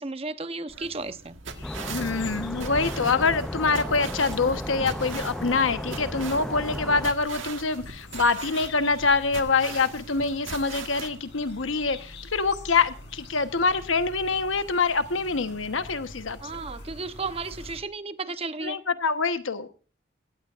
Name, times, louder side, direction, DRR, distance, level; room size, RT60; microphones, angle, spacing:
voice 1, 0.0-1.4 16.4-18.8, right 3 dB, 30° right, 11 dB, 0.8 m, -34 dB
sound 1, 0.7-11.1, right 5 dB, 80° right, 1.6 m, -41 dB
sound 2, 1.5-17.8, left 2 dB, 65° left, 4.2 m, -45 dB
sound 3, 1.6-7.1, equal, 5° left, 0.5 m, -34 dB
voice 2, 1.9-16.4 18.6-19.7, left 4 dB, 90° left, 10 dB, 1.1 m, -25 dB
17.0 x 15.5 x 2.5 m, 0.38 s
head